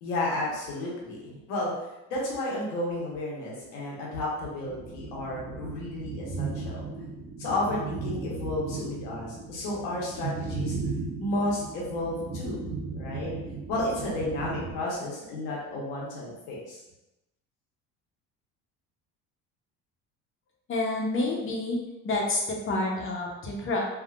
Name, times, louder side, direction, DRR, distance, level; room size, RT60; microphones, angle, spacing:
voice 1, 0.0-1.7 2.1-6.8 7.4-10.8 11.2-13.3 13.7-16.8, left 1 dB, 90° left, -4 dB, 1.1 m, -32 dB
sound 1, 4.6-14.7, right 4 dB, 80° right, 0.9 m, -36 dB
voice 2, 20.7-21.8 22.0-23.9, left 2 dB, 40° left, -1 dB, 0.8 m, -28 dB
3.6 x 2.4 x 2.5 m, 0.94 s
cardioid pair, 110°, 33 cm